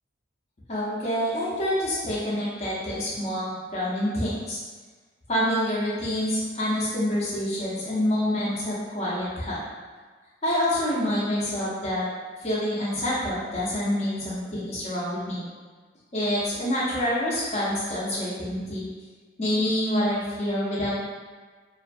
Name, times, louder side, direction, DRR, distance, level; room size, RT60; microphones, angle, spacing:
voice 1, 0.7-4.6 5.3-9.6 10.4-12.1 12.4-15.4 16.1-18.9 19.4-20.9, left 1 dB, 35° left, -8 dB, 0.5 m, -27 dB
2.4 x 2.2 x 2.5 m, 1.4 s
head